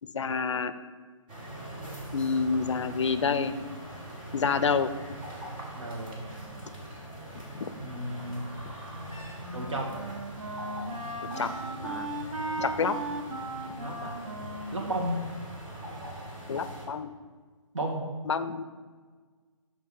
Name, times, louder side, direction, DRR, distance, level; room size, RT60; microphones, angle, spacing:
voice 1, 0.0-0.7 2.1-3.5 4.3-4.9 7.6-7.7 11.4-11.5 11.8-12.1 12.6-13.0 16.5-17.1 18.2-18.6, left 5 dB, 60° left, 12 dB, 0.5 m, -28 dB
sound 1, 1.3-16.9, right 1 dB, 15° right, 1.0 m, -42 dB
voice 2, 5.7-6.2 7.8-8.4 9.5-9.9 13.8-14.2 14.7-15.1 17.7-18.0, right 1 dB, 65° right, -1 dB, 2.0 m, -33 dB
Wind instrument woodwind instrument, 8.9-16.1, right 2 dB, 85° right, 1.5 m, -37 dB
6.0 x 5.7 x 6.4 m, 1.5 s
hypercardioid pair, 170°, 17 cm